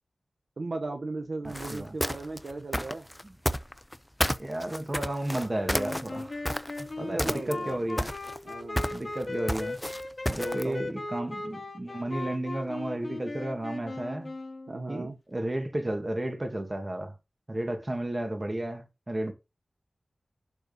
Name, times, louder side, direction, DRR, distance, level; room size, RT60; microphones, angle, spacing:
voice 1, 0.6-3.1 7.0-7.8 8.4-8.8 10.2-10.9 14.7-15.2, right 3 dB, 70° right, 1.0 m, -37 dB
voice 2, 1.4-1.9 3.2-3.3 4.4-6.4 6.8-8.1 8.9-9.8 10.3-14.3 14.9-17.1 17.5-19.3, right 1 dB, 30° right, 2.1 m, -33 dB
sound 1, 1.5-4.0 4.2-6.9 7.2-7.7 8.0-10.7, equal, 5° left, 0.6 m, -30 dB
sound 2, 5.7-14.9, left 2 dB, 45° left, 2.2 m, -38 dB
11.0 x 4.2 x 5.5 m
wide cardioid pair, 75°, 0 cm